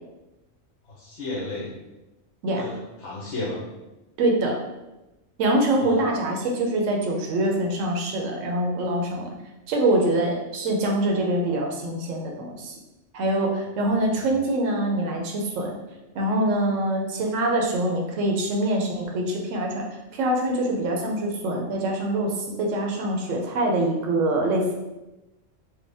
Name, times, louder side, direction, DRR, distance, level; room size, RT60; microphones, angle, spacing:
voice 1, 0.9-1.7 2.5-3.6 5.7-6.0 14.2-14.3, left 2 dB, 60° left, -7 dB, 1.2 m, -33 dB
voice 2, 4.2-4.6 5.4-9.3 9.7-12.8 13.1-15.8 16.1-19.9 20.1-24.7, right 1 dB, 80° right, 1 dB, 1.1 m, -24 dB
4.7 x 2.2 x 3.4 m, 1.0 s
omnidirectional pair, 1.3 m